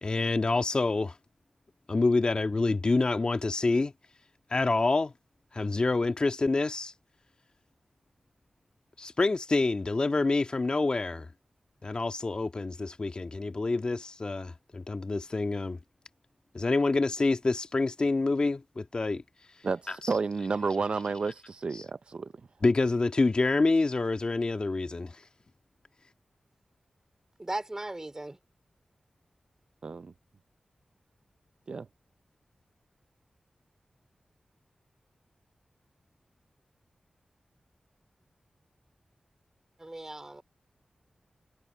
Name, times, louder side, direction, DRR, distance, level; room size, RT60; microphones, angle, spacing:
voice 1, 0.0-1.2 1.9-3.9 4.5-5.1 5.5-6.9 9.0-11.3 11.8-15.8 16.5-19.2 19.9-20.0 21.7-21.8 22.6-25.2, left 3 dB, 50° left, 1.6 m, -27 dB
voice 2, 19.6-22.3 29.8-30.1 31.7-31.9, right 4 dB, 60° right, 0.4 m, -31 dB
voice 3, 27.4-28.4 39.8-40.4, right 2 dB, 25° right, 3.4 m, -37 dB
cardioid pair, 50°, 2 cm